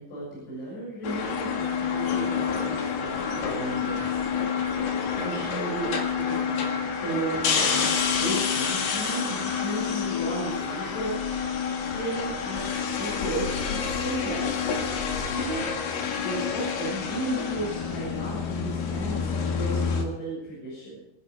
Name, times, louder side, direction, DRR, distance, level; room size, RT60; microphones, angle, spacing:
voice 1, 0.0-4.2 4.8-6.7 7.0-11.4 11.9-14.7 15.3-15.6 16.2-21.0, right 2 dB, 85° left, -7 dB, 9.4 m, -34 dB
sound 1, 1.0-20.0, left 6 dB, 65° left, 3.7 m, -28 dB
26.5 x 10.5 x 4.8 m, 0.86 s
omnidirectional pair, 5.3 m